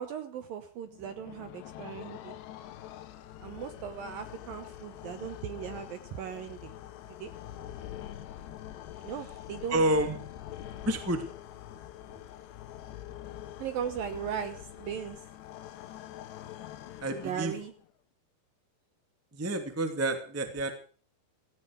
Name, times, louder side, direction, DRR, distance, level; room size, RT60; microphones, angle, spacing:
voice 1, 0.0-2.3 3.4-6.7 7.1-7.3 9.0-9.8 13.6-15.2 17.1-17.7, right 8 dB, 70° right, 10 dB, 2.2 m, -38 dB
sound 1, 0.9-17.9, left 12 dB, 75° left, 3.3 m, -45 dB
voice 2, 9.7-10.2 10.8-11.2 17.0-17.5 19.3-20.7, right 1 dB, 10° right, 7 dB, 0.9 m, -29 dB
17.0 x 16.0 x 4.9 m, 0.39 s
omnidirectional pair, 5.2 m